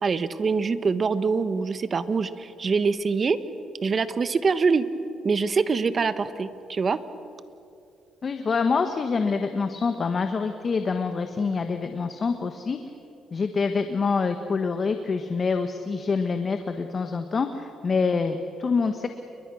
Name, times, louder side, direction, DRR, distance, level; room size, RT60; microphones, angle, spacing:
voice 1, 0.0-3.4 3.8-4.9 5.2-7.0, right 5 dB, 40° right, 13 dB, 1.2 m, -24 dB
voice 2, 8.2-12.8 13.3-19.1, left 4 dB, 40° left, 7 dB, 1.3 m, -26 dB
29.5 x 22.5 x 6.3 m, 2.6 s
cardioid pair, 95°, 0 cm